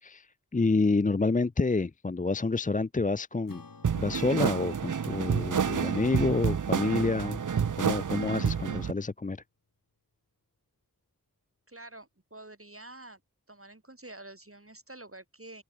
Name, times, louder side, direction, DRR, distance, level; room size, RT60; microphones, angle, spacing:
voice 1, 0.0-3.6 3.9-7.4 7.8-9.4, left 3 dB, 25° left, 0.5 m, -28 dB
Acoustic guitar / Strum, 3.5-8.2, left 4 dB, 80° left, 2.3 m, -55 dB
sound 1, 3.8-8.9, right 7 dB, 65° right, 0.6 m, -29 dB
voice 2, 11.7-13.2 13.5-15.6, right 2 dB, 40° right, 5.4 m, -48 dB
wide cardioid pair, 40°, 33 cm